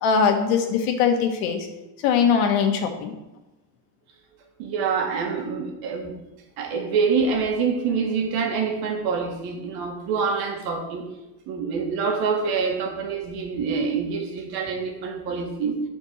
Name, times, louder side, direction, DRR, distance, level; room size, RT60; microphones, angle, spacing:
voice 1, 0.0-1.7 2.0-3.1, left 6 dB, 70° left, 4 dB, 1.7 m, -21 dB
voice 2, 4.6-6.2 6.6-11.1 11.5-15.8, right 5 dB, 55° right, 2 dB, 1.9 m, -26 dB
10.5 x 4.5 x 6.4 m, 0.99 s
cardioid pair, 175°, 46 cm